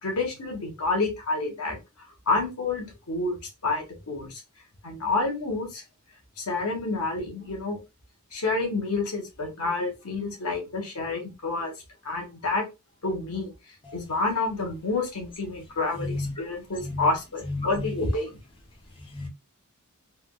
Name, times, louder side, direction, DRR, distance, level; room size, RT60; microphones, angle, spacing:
voice 1, 0.0-3.4 3.6-4.4 4.8-5.8 6.4-7.8 8.3-11.7 12.0-12.6 13.0-13.5 13.9-18.3, left 3 dB, 80° left, 1.2 m, -29 dB
voice 2, 16.0-16.3 16.8-17.0 17.5-17.9 19.1-19.3, left 2 dB, 25° left, 0.8 m, -31 dB
3.5 x 2.3 x 2.3 m
head